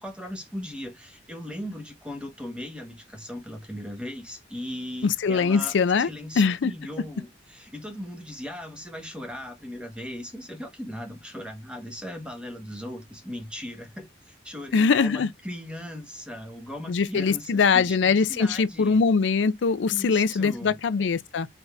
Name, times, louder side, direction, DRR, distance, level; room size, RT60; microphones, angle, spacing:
voice 1, 0.0-19.0 19.9-20.8, equal, 5° right, 1.1 m, -38 dB
voice 2, 5.0-6.1 6.4-6.7 14.7-15.3 16.9-21.5, left 5 dB, 80° left, 0.4 m, -22 dB
4.0 x 3.4 x 3.4 m
head